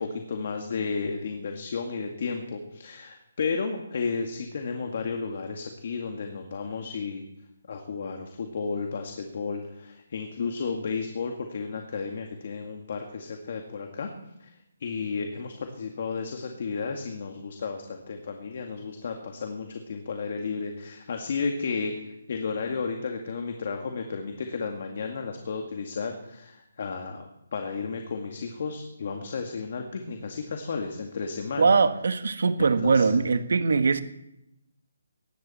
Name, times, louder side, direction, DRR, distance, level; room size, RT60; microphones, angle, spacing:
voice 1, 0.0-7.3 7.7-14.1 14.4-14.5 14.8-21.9 22.3-31.8 32.6-33.2, left 5 dB, 45° left, 2.0 m, -33 dB
voice 2, 31.6-34.0, right 4 dB, 65° right, 1.6 m, -22 dB
19.0 x 15.0 x 4.3 m
hypercardioid pair, 170°, 0 cm